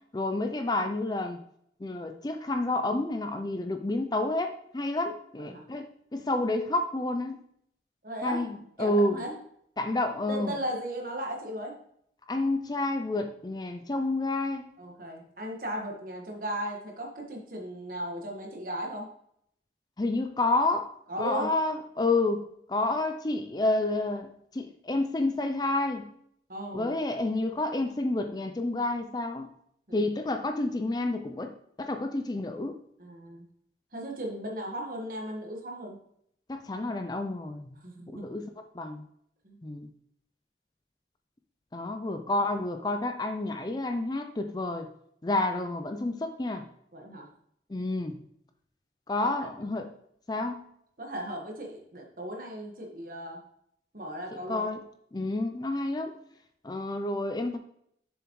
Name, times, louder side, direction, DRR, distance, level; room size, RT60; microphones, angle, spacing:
voice 1, 0.1-1.4 1.8-7.4 8.2-9.2 9.8-10.5 12.3-14.7 20.0-20.9 21.2-22.4 22.7-26.1 26.7-29.5 29.9-32.8 36.5-37.7 38.1-39.0 39.6-39.9 41.7-44.9 45.2-46.7 47.7-48.2 49.1-49.9 50.3-50.6 54.5-54.8 55.1-56.1 56.6-57.6, left 2 dB, 20° left, 7 dB, 0.4 m, -29 dB
voice 2, 8.0-8.4 8.8-9.3 10.3-11.7 14.8-19.1 21.1-21.5 26.5-26.9 29.9-30.0 33.0-33.5 33.9-36.0 37.8-38.2 39.4-39.6 46.9-47.3 49.2-49.5 51.0-53.4 53.9-54.7, equal, 50° right, 1 dB, 1.5 m, -36 dB
7.2 x 7.0 x 3.1 m, 0.71 s
head